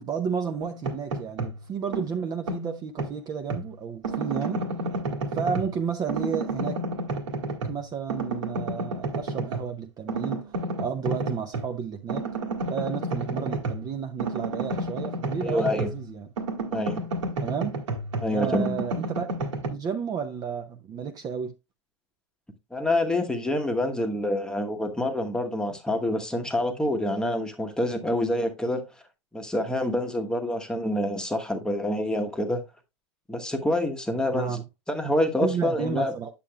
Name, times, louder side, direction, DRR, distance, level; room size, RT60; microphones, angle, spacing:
voice 1, 0.0-4.6 5.3-6.8 7.7-10.4 10.8-12.3 12.7-16.3 17.4-17.8 18.3-19.3 19.7-21.5 34.3-34.6 35.4-36.3, right 6 dB, 25° right, 0.6 m, -32 dB
sound 1, 0.6-1.6 1.9-3.7 4.0-5.8 6.1-7.8 8.1-9.7 10.1-11.7 12.1-16.1 16.4-19.7, right 2 dB, 80° right, 1.9 m, -31 dB
voice 2, 15.4-15.9 16.7-17.0 18.2-18.8 22.7-28.8 29.3-32.6 33.3-34.6 34.9-36.1, left 1 dB, 5° left, 1.1 m, -27 dB
8.5 x 7.3 x 2.3 m
hypercardioid pair, 125°, 15 cm